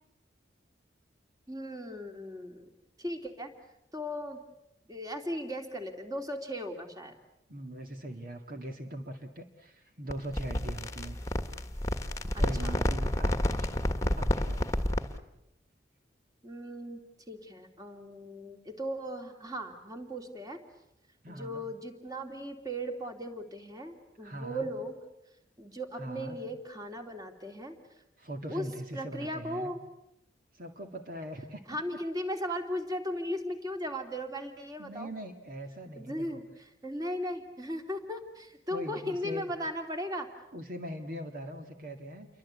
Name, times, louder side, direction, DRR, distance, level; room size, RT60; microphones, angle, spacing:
voice 1, 1.5-2.7 3.0-3.5 3.9-4.4 4.9-7.1 12.3-12.8 16.4-17.0 17.3-20.6 21.3-25.0 25.6-27.8 28.5-28.7 28.9-29.8 31.7-35.1 36.0-36.4 36.8-40.3, equal, 20° right, 5 dB, 2.9 m, -37 dB
voice 2, 7.5-11.2 12.4-13.9 14.2-14.7 21.2-21.6 24.2-24.7 26.0-26.4 28.2-29.7 30.5-31.6 34.8-36.4 38.7-39.5 40.5-42.3, right 1 dB, 50° right, 5 dB, 2.1 m, -41 dB
sound 1, 10.1-15.2, left 1 dB, 15° left, 1.5 m, -30 dB
29.5 x 24.0 x 8.5 m, 0.85 s
head